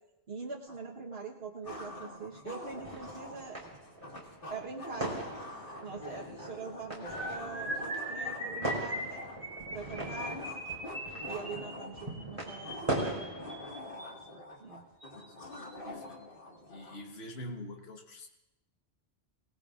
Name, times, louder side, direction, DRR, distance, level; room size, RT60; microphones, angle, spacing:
voice 1, 0.3-3.6 4.5-5.1 5.8-9.2 9.7-10.6 11.3-13.4 14.6-14.8, right 4 dB, 70° right, -3 dB, 1.5 m, -43 dB
sound 1, 0.7-0.8 1.6-17.0, left 1 dB, 55° left, 2.1 m, -46 dB
sound 2, 2.6-13.7, right 1 dB, 30° right, 4.1 m, -40 dB
sound 3, 7.1-14.2 15.0-15.2 15.5-15.7 16.0-16.2, right 1 dB, 35° left, 8.2 m, -40 dB
voice 2, 15.1-16.2 16.7-18.3, left 1 dB, 70° left, 2 dB, 1.5 m, -45 dB
27.0 x 18.5 x 2.5 m, 0.90 s
omnidirectional pair, 1.1 m